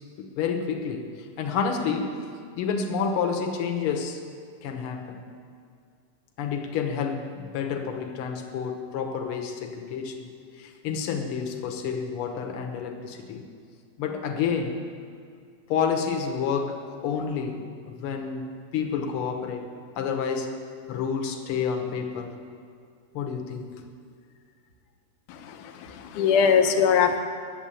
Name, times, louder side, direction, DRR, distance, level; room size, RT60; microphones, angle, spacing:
voice 1, 0.4-1.1 1.4-2.2 2.5-4.2 4.6-5.2 6.4-10.3 10.6-13.4 14.0-14.8 15.7-19.6 20.0-20.6 20.9-22.3 23.1-23.7, left 6 dB, 65° left, 3 dB, 1.4 m, -29 dB
voice 2, 25.3-27.2, left 7 dB, 85° left, 6 dB, 2.3 m, -22 dB
10.0 x 7.5 x 8.9 m, 2.3 s
omnidirectional pair, 3.5 m